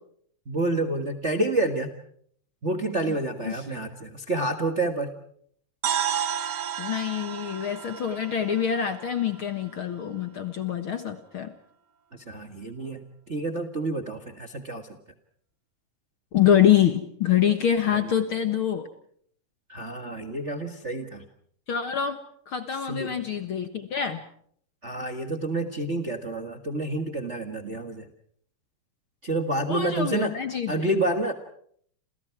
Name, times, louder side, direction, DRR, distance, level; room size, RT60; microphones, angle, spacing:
voice 1, 0.5-1.9 2.6-5.1 12.1-14.9 17.8-18.0 19.7-21.2 22.9-23.2 24.8-28.1 29.2-30.3 30.7-31.3, right 2 dB, 30° right, 6 dB, 1.4 m, -29 dB
voice 2, 3.4-3.8 6.8-11.5 16.3-18.9 21.7-22.2 22.5-24.2 29.7-30.9, left 9 dB, 55° left, 8 dB, 1.7 m, -25 dB
sound 1, 5.8-9.8, right 9 dB, 70° right, 1.0 m, -32 dB
29.5 x 28.5 x 4.7 m, 0.63 s
omnidirectional pair, 3.6 m